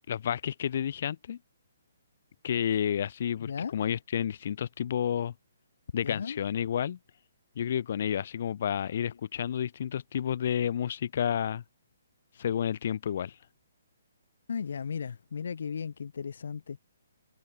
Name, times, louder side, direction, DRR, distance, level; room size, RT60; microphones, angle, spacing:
voice 1, 0.1-1.4 2.4-5.3 5.9-7.0 7.6-11.6 12.4-13.4, left 9 dB, 40° left, 1.8 m, -30 dB
voice 2, 3.4-3.8 6.0-6.4 8.9-9.2 14.5-16.8, left 6 dB, 60° left, 2.7 m, -36 dB
hypercardioid pair, 170°, 0 cm